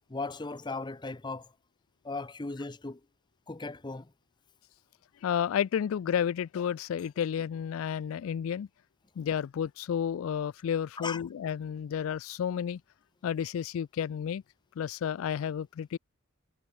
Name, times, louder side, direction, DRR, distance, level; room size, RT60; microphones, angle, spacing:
voice 1, 0.1-1.5 2.0-3.0 3.5-4.1 11.0-11.2, left 3 dB, 20° left, 0.7 m, -37 dB
voice 2, 5.2-8.7 9.2-12.8 13.2-14.4 14.8-16.0, left 8 dB, 75° left, 0.3 m, -31 dB
head